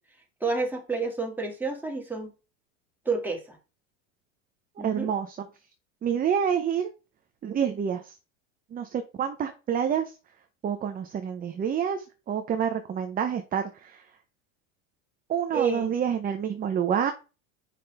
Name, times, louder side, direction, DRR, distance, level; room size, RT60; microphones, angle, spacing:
voice 1, 0.4-2.3 3.1-3.4 4.8-5.1 15.5-15.9, right 4 dB, 5° right, 2.1 m, -29 dB
voice 2, 4.8-5.5 6.0-6.9 7.4-8.2 8.7-10.1 10.6-14.0 15.3-17.1, right 8 dB, 20° right, 0.6 m, -28 dB
7.5 x 5.5 x 3.3 m
supercardioid pair, 125°, 41 cm